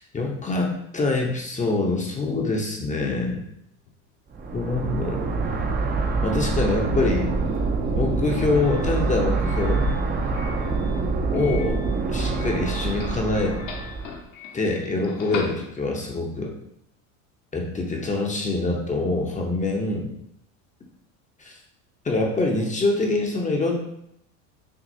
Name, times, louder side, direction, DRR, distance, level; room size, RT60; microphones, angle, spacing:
voice 1, 0.0-3.4 4.5-5.3 6.2-7.3 7.9-9.8 11.3-11.8 12.1-13.6 14.5-16.5 17.5-20.1 21.4-21.5 22.0-23.8, left 2 dB, 20° left, 0 dB, 0.7 m, -25 dB
sound 1, 2.4-2.5 2.8-2.9 3.3-3.4 3.9-12.3, left 5 dB, 80° left, 0.6 m, -42 dB
sound 2, 4.3-14.2, right 3 dB, 25° right, 0.6 m, -25 dB
Doorbell, 7.1-16.2, left 6 dB, 50° left, 0.9 m, -42 dB
6.2 x 2.3 x 2.7 m, 0.76 s
supercardioid pair, 95°, 40 cm